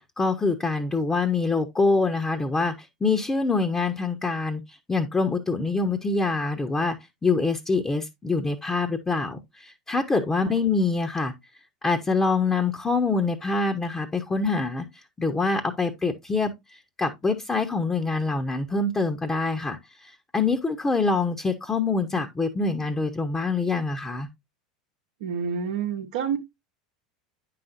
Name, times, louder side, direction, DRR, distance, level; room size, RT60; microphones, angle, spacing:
voice 1, 0.2-7.0 7.2-11.3 11.8-14.8 15.2-16.5 17.0-24.3, left 3 dB, 15° left, 1.0 m, -25 dB
voice 2, 25.2-26.4, right 7 dB, 65° right, 1.0 m, -28 dB
9.4 x 5.9 x 2.6 m
figure-of-eight pair, 80°, 4 cm